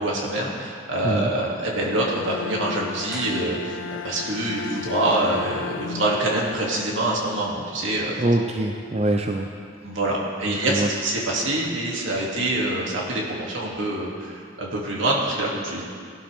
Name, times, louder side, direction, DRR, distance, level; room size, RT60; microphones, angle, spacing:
voice 1, 0.0-3.8 4.0-8.3 9.8-15.8, right 1 dB, 80° right, -4 dB, 2.7 m, -25 dB
Bowed string instrument, 1.8-7.8, left 6 dB, 85° left, 0.4 m, -35 dB
sound 1, 3.1-4.2 4.4-4.5, equal, 5° right, 1.2 m, -43 dB
voice 2, 8.2-9.5 10.5-10.9, right 1 dB, 30° right, 3 dB, 0.6 m, -24 dB
18.5 x 12.0 x 3.6 m, 2.2 s
head